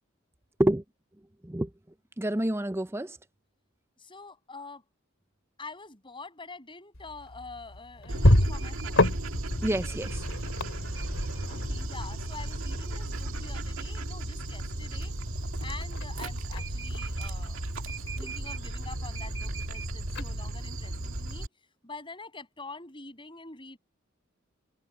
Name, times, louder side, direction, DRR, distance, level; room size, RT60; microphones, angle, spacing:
voice 1, 2.2-3.1 9.6-10.2, right 1 dB, 10° right, 0.7 m, -27 dB
voice 2, 4.0-4.8 5.6-9.1 11.5-15.1 15.6-17.7 18.2-21.5 21.8-23.8, left 3 dB, 25° left, 8.0 m, -45 dB
sound 1, 6.9-21.3, left 1 dB, 70° left, 2.8 m, -32 dB
Dog, 8.1-21.5, right 1 dB, 85° right, 1.9 m, -35 dB
head